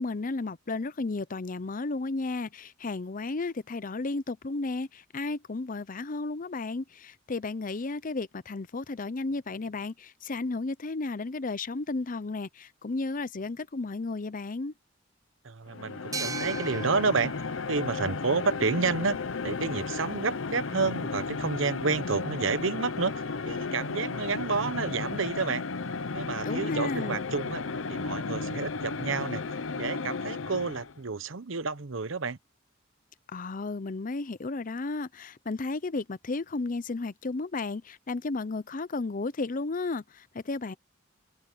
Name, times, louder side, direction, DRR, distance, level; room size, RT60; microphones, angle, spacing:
voice 1, 0.0-14.7 26.4-27.2 33.3-40.7, left 3 dB, 45° left, 0.7 m, -33 dB
voice 2, 15.4-17.3 17.7-19.2 19.4-25.6 26.1-27.6 27.9-32.4, right 4 dB, 90° right, 0.9 m, -30 dB
sound 1, 15.7-31.0, left 4 dB, 85° left, 0.8 m, -34 dB
sound 2, 16.1-19.5, right 5 dB, 15° right, 0.5 m, -41 dB
head